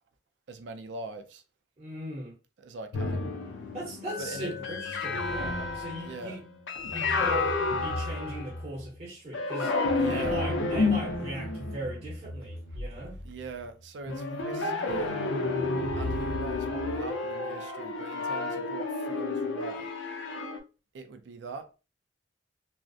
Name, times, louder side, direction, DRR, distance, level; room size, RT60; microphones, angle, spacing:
voice 1, 0.5-1.4 2.6-3.2 4.2-4.6 6.0-6.4 10.0-10.5 13.2-15.2 16.0-19.9 20.9-21.7, right 3 dB, 65° right, 0.4 m, -41 dB
voice 2, 1.8-2.3 3.7-6.4 6.9-7.5 7.8-9.7 10.1-13.2, right 1 dB, 35° right, 0.7 m, -39 dB
sound 1, 2.9-8.8 9.3-13.3 14.1-20.6, left 3 dB, 75° left, 0.5 m, -31 dB
Glass, 4.1-8.2, left 9 dB, 20° left, 0.5 m, -46 dB
2.3 x 2.0 x 2.6 m
head